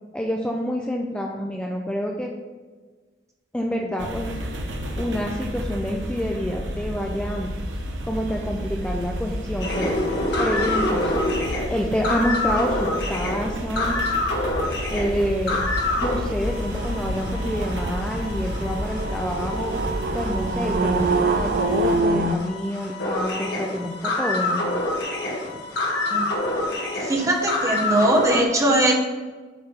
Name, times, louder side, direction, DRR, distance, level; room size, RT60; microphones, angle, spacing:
voice 1, 0.1-2.3 3.5-4.3 5.0-7.5 8.1-10.0 10.4-11.3 11.7-14.0 14.9-15.6 16.0-19.7 20.1-24.6, equal, 5° left, -1 dB, 0.5 m, -27 dB
sound 1, 4.0-22.0, equal, 85° right, 1.0 m, -32 dB
sound 2, 7.5-22.3, right 2 dB, 50° right, 0.5 m, -29 dB
sound 3, 9.6-16.1 16.4-28.4, left 2 dB, 65° left, 1.6 m, -27 dB
voice 2, 27.1-28.9, right 1 dB, 15° right, 0 dB, 1.2 m, -20 dB
8.8 x 3.6 x 6.5 m, 1.4 s
head